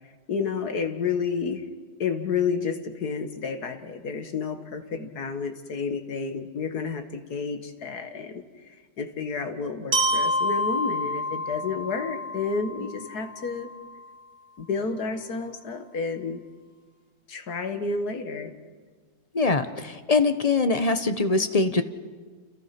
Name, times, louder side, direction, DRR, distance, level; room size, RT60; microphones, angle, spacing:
voice 1, 0.3-1.7 2.0-13.7 14.6-16.4 17.3-18.5, left 5 dB, 55° left, 8 dB, 2.1 m, -30 dB
Glockenspiel, 9.9-13.9, equal, 55° right, 4.7 m, -28 dB
voice 2, 19.3-21.8, left 3 dB, 30° left, 9 dB, 0.7 m, -23 dB
29.0 x 28.5 x 5.9 m, 1.5 s
omnidirectional pair, 2.1 m